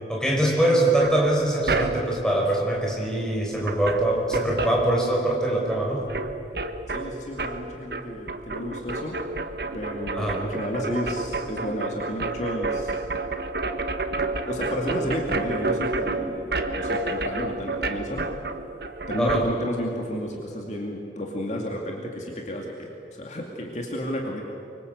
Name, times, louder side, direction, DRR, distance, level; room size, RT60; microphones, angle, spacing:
voice 1, 0.1-6.1 10.1-10.4 19.2-19.4, right 1 dB, 5° left, -2 dB, 5.3 m, -23 dB
sound 1, 1.0-2.3 3.3-3.4 3.6-5.4 5.7-19.4, right 3 dB, 60° right, 1.4 m, -30 dB
voice 2, 6.9-9.2 9.7-13.0 14.4-18.3 19.1-24.4, equal, 40° left, 0 dB, 2.5 m, -32 dB
25.0 x 24.0 x 8.1 m, 2.8 s
head